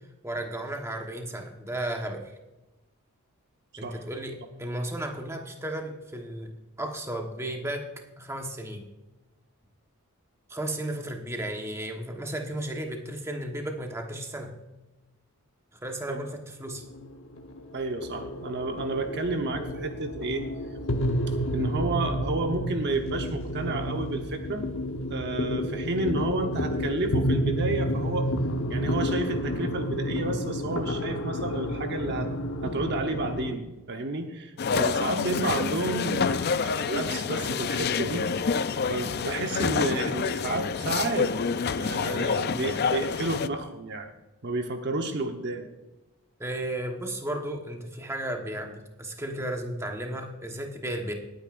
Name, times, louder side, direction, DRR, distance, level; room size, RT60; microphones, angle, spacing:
voice 1, 0.2-2.4 3.8-7.9 8.2-8.8 10.5-14.5 15.8-16.8 46.4-51.1, right 1 dB, 10° right, 3 dB, 1.2 m, -34 dB
sound 1, 16.7-33.6, equal, 65° left, 1.0 m, -30 dB
voice 2, 17.7-20.5 21.3-24.6 25.1-28.3 28.7-32.3 32.6-38.5 38.9-41.3 41.7-44.1 44.4-45.7, right 2 dB, 50° right, 5 dB, 1.0 m, -31 dB
sound 2, 34.6-43.5, left 5 dB, 45° left, 0.4 m, -28 dB
19.5 x 9.3 x 2.5 m, 1.0 s
head